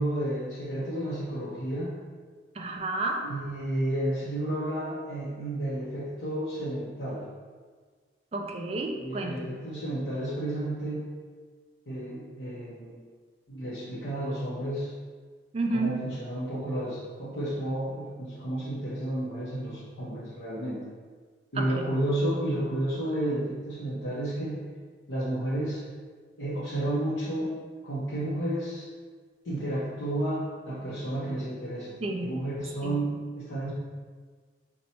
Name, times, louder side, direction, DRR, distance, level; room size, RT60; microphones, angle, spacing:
voice 1, 0.0-1.9 3.2-7.2 9.0-11.1 11.9-13.0 13.5-14.9 15.7-20.8 21.5-24.6 25.1-25.8 26.4-27.5 27.8-28.9 29.4-31.9 32.2-33.7, right 1 dB, 80° left, -8 dB, 0.7 m, -31 dB
voice 2, 2.6-3.3 8.3-9.5 15.5-16.0 21.6-21.9 32.0-32.3 32.8-33.0, right 2 dB, 35° right, 2 dB, 0.4 m, -31 dB
4.1 x 2.2 x 4.1 m, 1.5 s
head